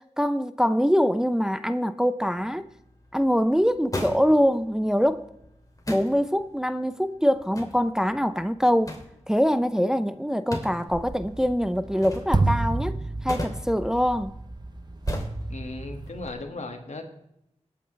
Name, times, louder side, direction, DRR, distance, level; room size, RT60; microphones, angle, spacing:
voice 1, 0.0-2.7 3.1-5.3 5.9-8.9 9.3-14.3, equal, 5° right, 0.6 m, -24 dB
sound 1, 2.2-16.3, left 1 dB, 30° left, 2.8 m, -41 dB
sound 2, 10.9-16.3, right 2 dB, 35° right, 0.9 m, -30 dB
voice 2, 15.5-17.0, left 2 dB, 70° left, 1.9 m, -36 dB
19.0 x 8.7 x 3.3 m
cardioid pair, 50°, 12 cm